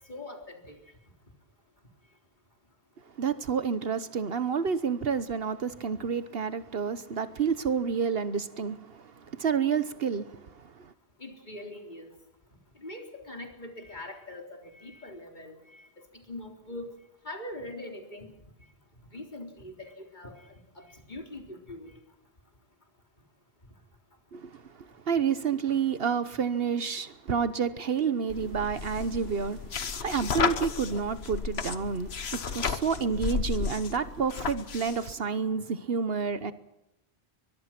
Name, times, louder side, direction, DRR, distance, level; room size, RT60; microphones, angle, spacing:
voice 1, 0.1-0.8 11.2-12.1 12.8-16.9 17.2-18.3 19.1-22.0, left 1 dB, 45° left, 4.0 m, -42 dB
voice 2, 3.2-10.9 24.3-36.5, right 6 dB, 65° right, 1.2 m, -29 dB
sound 1, 28.3-35.1, left 6 dB, 75° left, 1.4 m, -33 dB
23.5 x 22.0 x 6.0 m
omnidirectional pair, 1.1 m